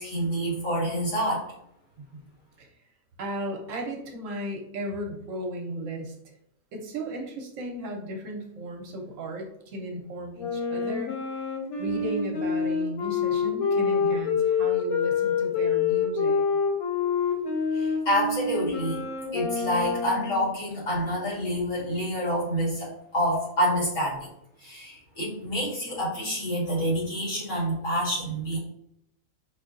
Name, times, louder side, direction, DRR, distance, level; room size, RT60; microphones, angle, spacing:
voice 1, 0.0-1.5 17.7-19.0 19.3-24.3 24.6-28.6, equal, 60° left, -6 dB, 2.0 m, -27 dB
voice 2, 3.2-6.1 6.7-11.5 11.8-16.4, equal, 70° right, 2 dB, 1.0 m, -35 dB
Wind instrument woodwind instrument, 10.4-20.4, left 5 dB, 90° left, 1.3 m, -27 dB
4.9 x 2.6 x 2.5 m, 0.75 s
omnidirectional pair, 1.5 m